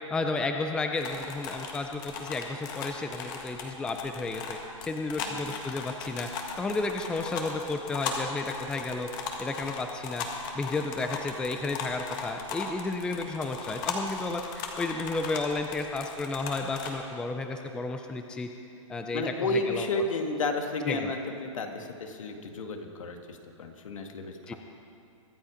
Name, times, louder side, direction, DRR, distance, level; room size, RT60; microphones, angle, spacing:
voice 1, 0.1-6.3 6.6-9.1 9.4-10.3 10.5-18.5 18.9-19.3 19.7-20.0 20.9-21.1 24.5-24.6, left 3 dB, 5° left, 5 dB, 0.5 m, -32 dB
sound 1, 1.0-16.9, left 5 dB, 40° left, 1.7 m, -38 dB
voice 2, 5.2-5.5 19.1-24.6, left 2 dB, 80° left, 4 dB, 1.8 m, -32 dB
23.5 x 8.0 x 5.0 m, 2.6 s
hypercardioid pair, 155°, 17 cm